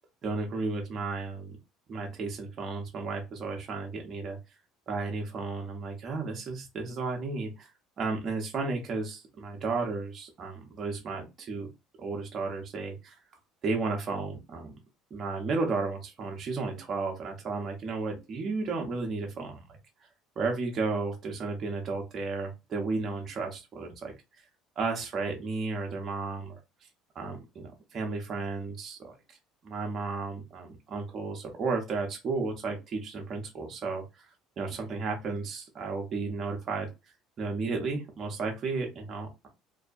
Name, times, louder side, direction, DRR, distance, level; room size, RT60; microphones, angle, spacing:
voice 1, 0.2-1.6 1.9-4.4 4.9-7.7 8.0-11.7 12.0-13.2 13.6-14.7 15.1-19.6 20.4-24.5 24.8-26.6 27.1-29.4 29.6-34.3 34.6-36.9 37.4-39.5, right 3 dB, 40° right, 1 dB, 0.7 m, -33 dB
2.6 x 2.1 x 2.4 m, 0.25 s
supercardioid pair, 95°, 0 cm